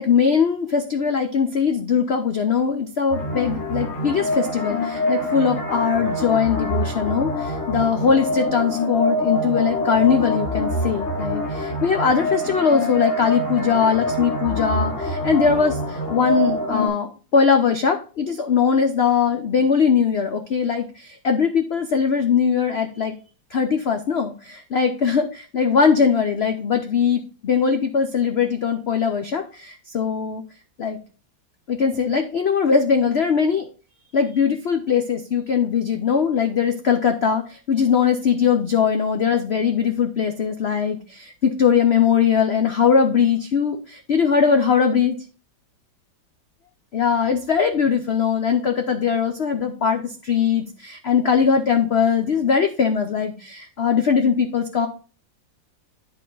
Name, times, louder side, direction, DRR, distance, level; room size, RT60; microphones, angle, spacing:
voice 1, 0.0-23.2 23.5-30.4 30.8-31.0 31.7-33.7 34.1-45.2 46.9-54.9, left 6 dB, 85° left, 5 dB, 0.5 m, -20 dB
sound 1, 3.1-16.9, left 1 dB, 35° left, 4.1 m, -25 dB
10.5 x 4.3 x 3.8 m, 0.36 s
omnidirectional pair, 2.0 m